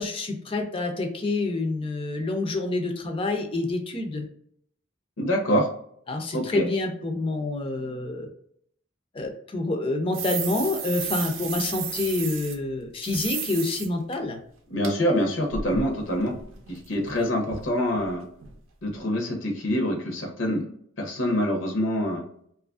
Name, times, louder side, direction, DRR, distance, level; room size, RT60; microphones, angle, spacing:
voice 1, 0.0-4.2 6.1-8.3 9.1-14.4, left 2 dB, 25° left, 4 dB, 0.4 m, -27 dB
voice 2, 5.2-5.7 6.3-6.6 14.7-16.3 16.7-18.2 18.8-20.7 21.0-22.2, equal, 75° left, 2 dB, 0.7 m, -25 dB
sound 1, 10.1-12.5 13.0-13.9 14.1-14.2 14.8-14.9 15.2-17.2 17.5-17.7 18.0-18.1 18.4-18.5 18.9-19.0, right 7 dB, 80° right, 0.5 m, -33 dB
2.7 x 2.4 x 2.3 m, 0.66 s
head